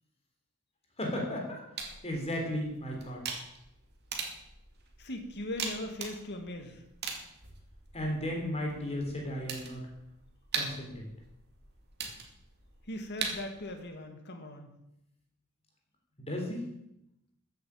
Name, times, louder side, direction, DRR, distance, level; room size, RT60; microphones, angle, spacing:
voice 1, 1.0-1.6 2.0-3.2 7.9-9.8 10.5-11.1 16.2-16.7, equal, 30° left, 0 dB, 3.4 m, -34 dB
sound 1, 1.8-13.8, right 5 dB, 50° right, 2.3 m, -42 dB
voice 2, 5.0-6.8 12.9-14.7, left 1 dB, 50° left, 5 dB, 2.2 m, -39 dB
14.0 x 8.1 x 7.3 m, 0.82 s
head